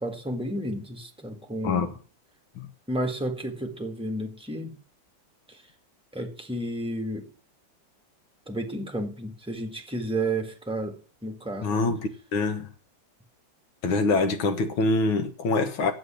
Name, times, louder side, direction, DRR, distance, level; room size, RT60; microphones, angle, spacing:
voice 1, 0.0-1.9 2.9-4.8 5.5-5.6 6.1-7.3 8.5-11.8, right 1 dB, 5° right, 1.2 m, -32 dB
voice 2, 11.6-12.7 13.8-15.9, left 3 dB, 85° left, 2.3 m, -25 dB
8.0 x 7.8 x 8.6 m
omnidirectional pair, 2.1 m